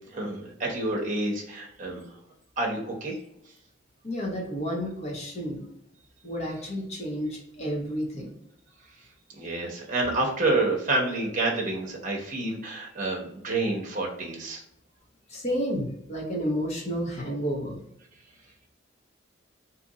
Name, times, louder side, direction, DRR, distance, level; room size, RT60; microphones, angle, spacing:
voice 1, 0.1-2.0 2.6-3.2 9.4-14.6, right 2 dB, 40° right, 0 dB, 0.9 m, -28 dB
voice 2, 4.0-5.6 6.2-8.3 15.3-17.8, equal, 35° left, -2 dB, 0.9 m, -31 dB
2.8 x 2.5 x 3.8 m, 0.75 s
head